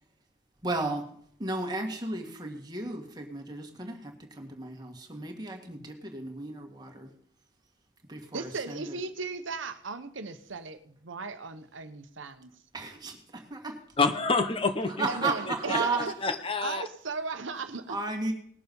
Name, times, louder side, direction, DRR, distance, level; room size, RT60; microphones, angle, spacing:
voice 1, 0.6-1.1 1.4-7.1 8.1-9.0 12.7-13.8 14.9-16.1 17.9-18.3, right 3 dB, 20° right, 3 dB, 1.8 m, -34 dB
voice 2, 8.3-12.5 15.1-16.1 16.6-18.0, right 4 dB, 80° right, 10 dB, 0.9 m, -36 dB
voice 3, 14.0-15.1 15.7-15.8 16.2-16.8, left 3 dB, 30° left, 7 dB, 0.8 m, -27 dB
19.5 x 6.9 x 5.4 m, 0.63 s
head